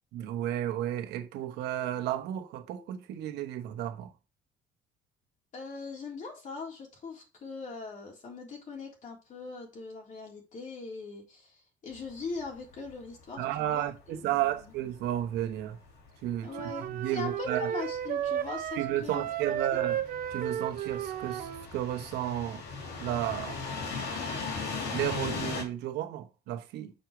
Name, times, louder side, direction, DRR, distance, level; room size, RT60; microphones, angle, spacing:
voice 1, 0.1-4.1 13.4-15.8 16.2-16.5 16.8-17.7 18.8-20.0 20.3-22.6 23.0-23.6 24.9-26.9, right 12 dB, 85° right, 1.1 m, -33 dB
voice 2, 5.5-14.7 16.4-19.2 19.7-19.9, left 4 dB, 50° left, 3.6 m, -41 dB
sound 1, 11.9-25.6, left 4 dB, 85° left, 2.5 m, -40 dB
sound 2, 16.5-21.7, right 10 dB, 60° right, 0.7 m, -34 dB
6.5 x 4.8 x 4.9 m
cardioid pair, 110°, 17 cm